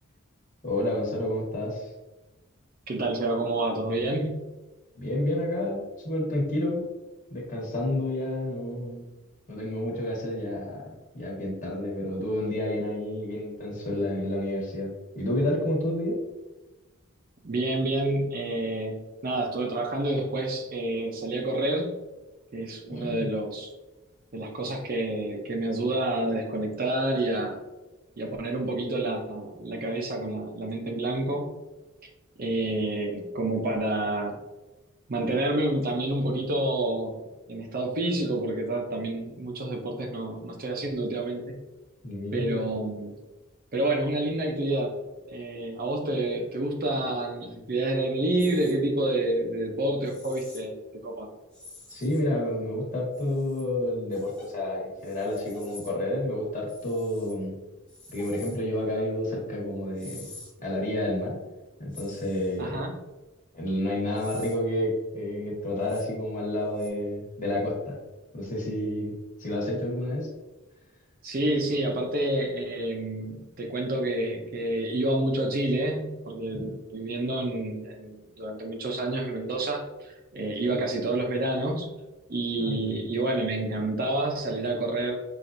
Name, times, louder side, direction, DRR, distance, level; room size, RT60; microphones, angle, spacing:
voice 1, 0.6-1.9 4.9-6.9 7.3-9.0 9.5-16.2 22.9-23.3 42.0-42.7 51.9-57.5 58.1-60.3 60.6-61.4 61.8-62.8 63.5-68.0 68.3-70.3 76.5-76.8 80.6-80.7 82.6-82.9, left 1 dB, 35° left, -4 dB, 1.3 m, -30 dB
voice 2, 2.9-4.5 17.4-21.9 22.5-23.7 24.3-27.6 28.2-31.6 32.4-34.4 35.1-37.2 37.5-41.6 42.3-43.2 43.7-45.0 45.3-51.3 62.6-63.0 71.2-81.9 82.3-85.2, right 1 dB, 45° right, 2 dB, 0.5 m, -28 dB
sound 1, 48.4-48.7 50.0-50.6 51.5-52.3 53.1-53.6 54.1-54.5 55.0-55.9 56.7-57.3 57.9-58.6 60.0-60.5 61.9-62.6 64.1-64.6 65.8-66.0 66.8-66.9, left 2 dB, 5° left, 0.9 m, -47 dB
5.8 x 2.5 x 2.6 m, 1.1 s
head